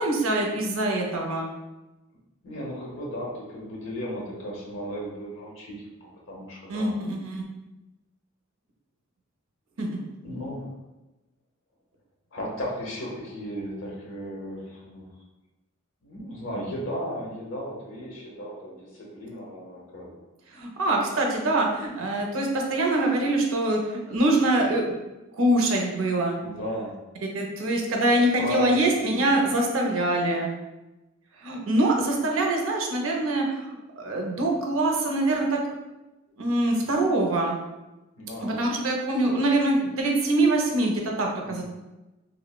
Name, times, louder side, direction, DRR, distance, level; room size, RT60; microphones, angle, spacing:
voice 1, 0.0-1.5 6.7-7.4 9.8-10.0 20.5-24.9 25.4-26.4 27.3-30.5 31.4-35.6 36.4-37.6 38.4-41.6, right 2 dB, 90° right, 1 dB, 0.5 m, -24 dB
voice 2, 2.4-6.9 10.2-10.7 12.3-15.1 16.0-20.1 26.4-26.9 28.4-29.4 38.2-38.7 41.4-41.6, equal, 75° left, -3 dB, 0.7 m, -35 dB
3.1 x 2.0 x 2.3 m, 1.0 s
head